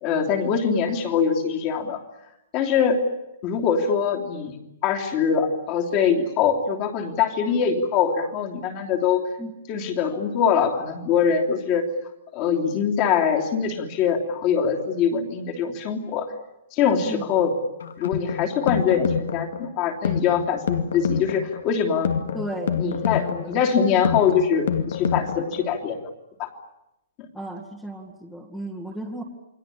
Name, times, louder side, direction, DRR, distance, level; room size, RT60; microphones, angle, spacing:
voice 1, 0.0-2.0 2.5-3.0 3.4-4.5 4.8-9.3 9.7-11.8 12.3-16.3 16.7-17.5 18.0-22.1 22.8-26.0 26.4-26.5, left 7 dB, 25° left, 4 dB, 3.1 m, -23 dB
sound 1, 17.8-25.8, left 8 dB, 75° left, 2.4 m, -28 dB
voice 2, 22.3-22.8 23.0-23.6 27.3-29.2, right 1 dB, 5° left, 2 dB, 2.0 m, -34 dB
29.0 x 22.5 x 8.6 m, 0.87 s
hypercardioid pair, 175°, 0 cm